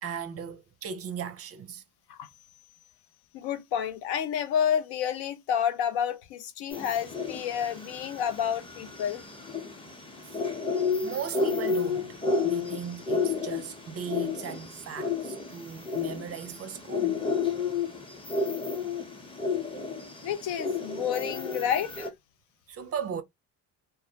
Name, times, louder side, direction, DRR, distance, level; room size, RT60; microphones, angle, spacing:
voice 1, 0.0-1.8 10.3-10.4 11.0-17.2 22.7-23.2, right 7 dB, 40° right, 0.5 m, -37 dB
voice 2, 3.3-9.2 20.2-22.1, left 9 dB, 75° left, 0.6 m, -30 dB
sound 1, 6.7-22.1, left 4 dB, 15° left, 0.7 m, -31 dB
2.3 x 2.0 x 2.7 m
supercardioid pair, 80°, 39 cm